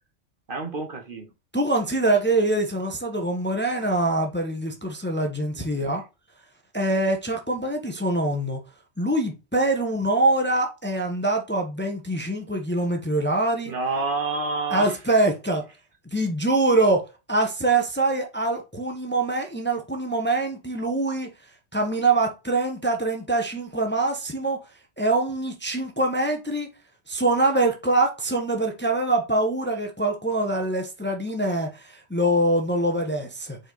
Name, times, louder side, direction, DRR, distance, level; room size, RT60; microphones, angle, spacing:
voice 1, 0.5-1.3 5.5-6.0 13.6-15.0, right 3 dB, 45° right, 1.2 m, -29 dB
voice 2, 1.5-6.0 6.7-8.6 9.0-13.7 14.7-15.6 16.1-17.0 17.3-21.3 21.7-24.6 25.0-26.7 27.1-33.6, right 2 dB, 10° left, 1.0 m, -24 dB
5.4 x 4.5 x 3.9 m
omnidirectional pair, 1.2 m